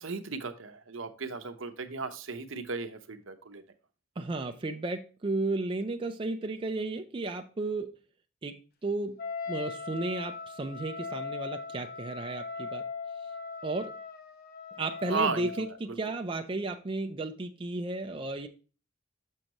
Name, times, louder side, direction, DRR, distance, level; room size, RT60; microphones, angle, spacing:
voice 1, 0.0-3.6 15.1-16.0, right 4 dB, 70° right, 8 dB, 0.8 m, -35 dB
voice 2, 4.2-7.9 8.4-9.2 9.5-12.8 13.6-13.9 14.8-18.5, right 2 dB, 25° right, 5 dB, 0.4 m, -34 dB
Wind instrument woodwind instrument, 9.2-15.8, left 4 dB, 50° left, 0.8 m, -39 dB
6.5 x 6.3 x 2.9 m, 0.35 s
head